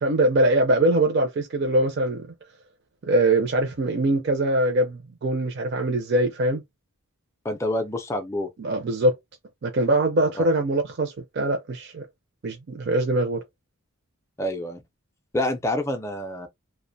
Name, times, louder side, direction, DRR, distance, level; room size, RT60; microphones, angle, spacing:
voice 1, 0.0-2.3 3.0-6.6 8.6-9.1 9.6-12.1 12.4-13.4, right 1 dB, 50° right, 0.4 m, -22 dB
voice 2, 7.4-8.5 10.4-10.5 14.4-14.8 15.3-16.5, left 1 dB, 15° left, 0.4 m, -27 dB
2.4 x 2.1 x 2.6 m
head